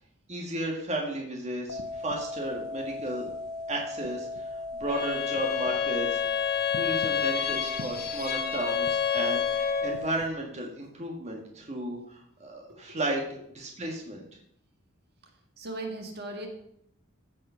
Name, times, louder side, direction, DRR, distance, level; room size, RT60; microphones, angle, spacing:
voice 1, 0.3-3.3 3.7-6.2 6.7-13.2 13.5-14.2, right 1 dB, 30° right, 0 dB, 1.7 m, -34 dB
sound 1, 1.7-10.3, left 2 dB, 75° left, 1.0 m, -37 dB
Bowed string instrument, 4.9-10.0, left 7 dB, 45° left, 1.4 m, -29 dB
voice 2, 12.7-13.0 15.6-16.5, right 2 dB, 50° right, 3 dB, 1.8 m, -38 dB
14.5 x 5.4 x 5.6 m, 0.72 s
head